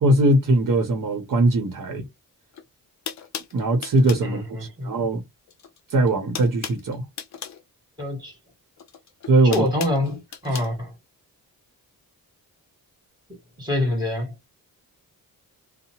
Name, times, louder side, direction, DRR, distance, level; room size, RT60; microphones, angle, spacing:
voice 1, 0.0-2.1 3.5-5.2 5.9-7.0 9.3-9.7 10.5-10.6, right 2 dB, 60° right, 0.8 m, -20 dB
sound 1, 2.5-2.6 3.0-4.3 5.5-5.8 6.0-7.6 8.8-10.7, left 8 dB, 50° left, 0.5 m, -36 dB
voice 2, 4.2-4.9 8.0-8.3 9.4-10.9 13.6-14.3, left 1 dB, 10° right, 1.7 m, -26 dB
2.8 x 2.0 x 2.8 m
wide cardioid pair, 145°, 37 cm